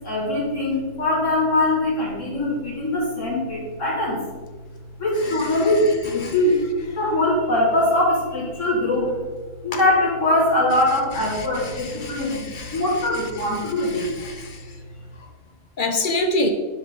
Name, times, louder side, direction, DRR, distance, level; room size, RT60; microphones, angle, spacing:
voice 1, 0.0-4.2 5.0-6.6 6.8-9.1 9.6-14.1, left 1 dB, 75° left, -6 dB, 2.2 m, -22 dB
voice 2, 11.8-12.8 13.9-14.5 15.8-16.5, left 2 dB, 50° left, 5 dB, 0.7 m, -26 dB
7.0 x 5.4 x 3.6 m, 1.4 s
omnidirectional pair, 1.3 m